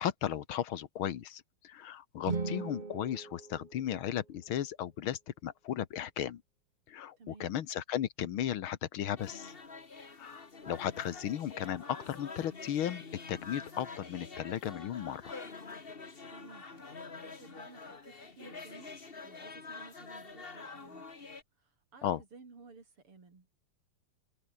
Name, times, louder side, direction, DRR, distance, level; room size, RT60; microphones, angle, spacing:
voice 1, 0.0-6.4 6.9-9.5 10.2-15.3 22.0-22.2, left 10 dB, 75° left, 2.0 m, -35 dB
sound 1, 2.2-4.4, right 4 dB, 25° right, 1.3 m, -39 dB
voice 2, 7.2-7.6 16.3-16.8 17.1-21.3 21.6-23.5, right 4 dB, 90° right, 5.2 m, -56 dB
sound 2, 9.2-21.4, left 4 dB, 25° left, 1.8 m, -47 dB
omnidirectional pair, 2.4 m